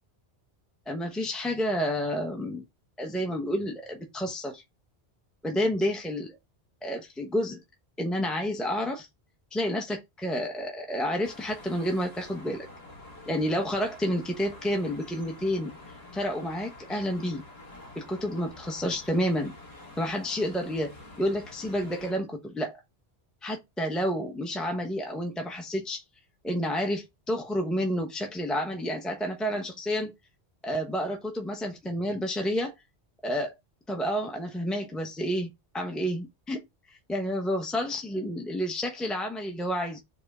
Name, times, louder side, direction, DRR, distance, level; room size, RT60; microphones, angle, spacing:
voice 1, 0.9-2.6 3.0-4.6 5.4-6.3 6.8-7.6 8.0-9.1 9.5-12.7 13.3-15.7 16.1-17.4 18.0-19.5 20.0-20.9 21.2-22.8 23.4-26.0 26.4-30.1 30.6-32.7 33.2-33.5 33.9-36.6 37.1-40.0, equal, ahead, 1.0 m, -30 dB
sound 1, 11.2-22.1, left 2 dB, 35° left, 2.2 m, -48 dB
4.9 x 3.7 x 5.4 m
omnidirectional pair, 1.1 m